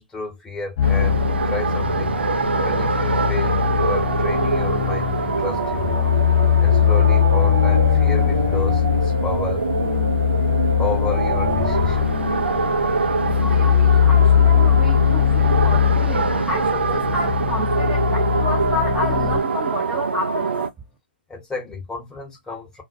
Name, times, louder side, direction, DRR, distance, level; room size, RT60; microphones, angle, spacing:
voice 1, 0.0-6.1 6.6-9.6 10.8-12.1 21.3-22.8, left 3 dB, 10° left, 0.9 m, -32 dB
sound 1, 0.8-19.4, left 9 dB, 40° left, 0.6 m, -20 dB
sound 2, 0.8-20.7, right 4 dB, 80° right, 0.4 m, -24 dB
voice 2, 13.4-20.5, left 1 dB, 10° right, 0.6 m, -30 dB
2.2 x 2.1 x 2.5 m
figure-of-eight pair, 130°, 6 cm